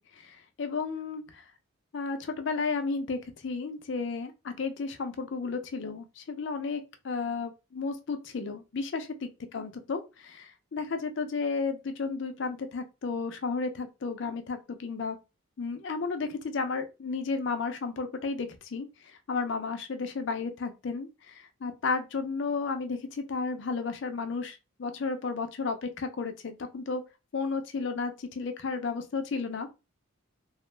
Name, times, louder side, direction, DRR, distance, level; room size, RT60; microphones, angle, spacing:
voice 1, 0.0-1.4 1.9-15.2 15.6-18.9 19.3-27.0 27.3-29.7, left 4 dB, 60° left, 0.4 m, -33 dB
2.4 x 2.1 x 3.1 m
head